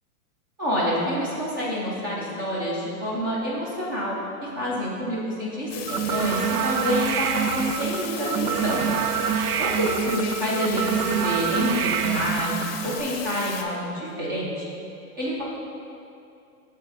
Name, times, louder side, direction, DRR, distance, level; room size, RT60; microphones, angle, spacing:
voice 1, 0.6-4.2 4.6-8.9 9.6-14.6 15.2-15.4, equal, 15° right, -6 dB, 0.4 m, -27 dB
sound 1, 5.7-13.6, left 6 dB, 40° left, 0.6 m, -36 dB
sound 2, 5.9-13.0, right 8 dB, 80° right, 0.5 m, -26 dB
6.8 x 4.2 x 4.9 m, 2.6 s
hypercardioid pair, 160°, 46 cm